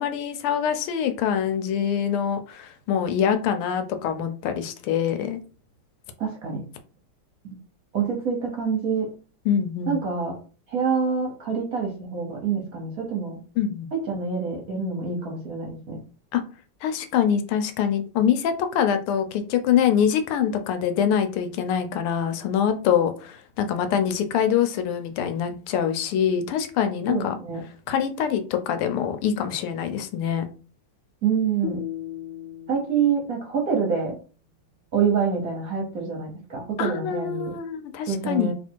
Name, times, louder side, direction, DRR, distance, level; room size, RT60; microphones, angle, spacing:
voice 1, 0.0-5.4 9.5-10.0 13.6-13.9 16.3-16.4 16.8-27.3 27.9-30.5 36.8-38.5, left 8 dB, 85° left, 8 dB, 1.5 m, -24 dB
voice 2, 6.2-6.7 7.4-7.6 7.9-9.1 9.9-10.4 10.7-13.4 13.9-16.0 27.1-27.6 31.2-31.8 32.7-34.2 34.9-37.5 38.1-38.5, right 6 dB, 55° right, 0 dB, 1.0 m, -26 dB
sound 1, 31.6-34.8, left 12 dB, 65° left, 1.3 m, -38 dB
3.3 x 2.9 x 4.4 m, 0.37 s
omnidirectional pair, 2.4 m